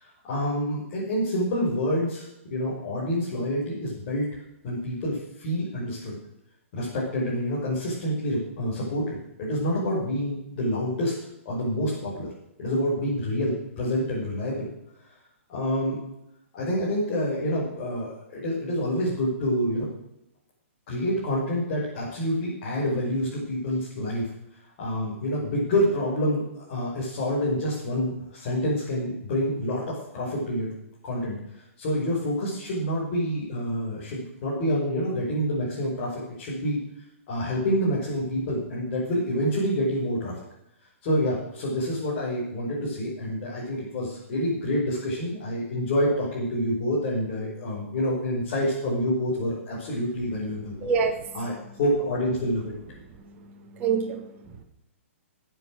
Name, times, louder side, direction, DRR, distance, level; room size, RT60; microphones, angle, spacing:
voice 1, 0.0-4.3 4.6-6.2 6.7-11.2 11.5-12.3 12.6-14.7 15.5-16.0 16.5-19.9 20.9-24.3 24.8-30.8 31.0-36.8 37.3-40.3 41.0-50.7 51.3-51.5 51.8-52.7, equal, 40° left, -6 dB, 5.5 m, -27 dB
voice 2, 50.8-51.3 53.4-54.6, right 6 dB, 20° right, 0 dB, 1.7 m, -28 dB
20.5 x 8.0 x 6.5 m, 0.83 s
hypercardioid pair, 160°, 7 cm